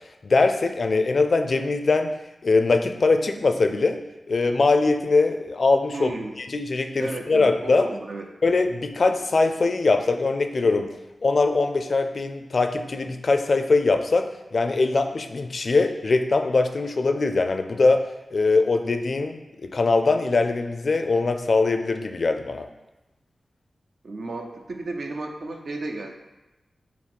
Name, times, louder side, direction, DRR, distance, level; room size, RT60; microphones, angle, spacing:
voice 1, 0.2-2.1 2.4-4.0 4.3-6.1 6.4-7.9 8.4-10.9 11.2-18.0 18.3-22.7, left 3 dB, 60° left, 7 dB, 0.4 m, -22 dB
voice 2, 5.9-6.3 7.0-8.3 24.0-26.1, right 2 dB, 65° right, 3 dB, 0.6 m, -33 dB
5.7 x 2.0 x 4.6 m, 1.0 s
cardioid pair, 55°, 0 cm